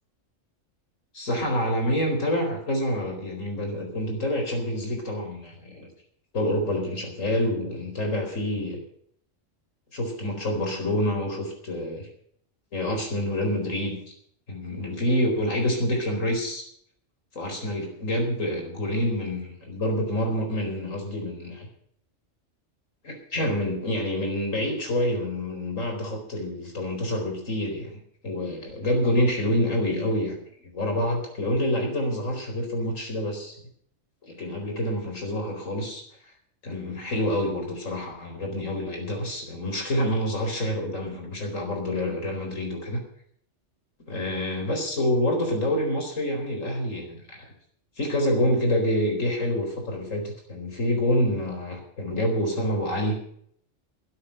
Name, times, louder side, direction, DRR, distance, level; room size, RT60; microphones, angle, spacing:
voice 1, 1.1-5.9 6.3-8.8 9.9-12.1 12.7-14.0 14.5-16.6 17.3-21.7 23.0-30.4 30.7-33.5 34.2-36.0 36.6-43.0 44.1-47.5 48.0-53.2, left 1 dB, 85° left, 2 dB, 4.7 m, -27 dB
13.5 x 9.5 x 7.8 m, 0.64 s
omnidirectional pair, 1.3 m